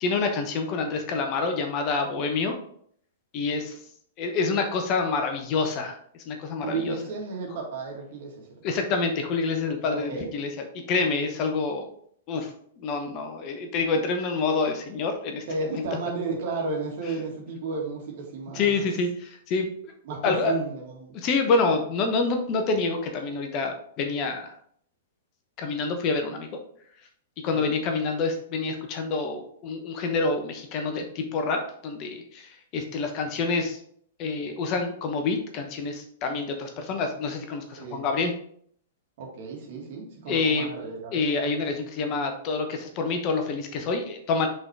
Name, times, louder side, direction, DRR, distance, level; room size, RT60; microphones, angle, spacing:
voice 1, 0.0-2.5 3.3-3.7 4.2-6.0 6.3-7.0 8.6-11.9 12.3-12.5 12.8-15.4 15.8-15.9 18.5-19.7 20.2-20.5 21.1-24.5 25.6-26.5 27.4-33.8 34.2-38.3 40.3-40.7 41.1-44.5, left 4 dB, 35° left, 5 dB, 1.0 m, -27 dB
voice 2, 6.6-8.5 9.9-10.3 15.5-18.9 20.0-21.1 27.5-27.7 37.8-38.1 39.2-41.2, right 3 dB, 50° right, 0 dB, 2.0 m, -33 dB
5.5 x 4.0 x 4.6 m, 0.63 s
figure-of-eight pair, 105°, 0 cm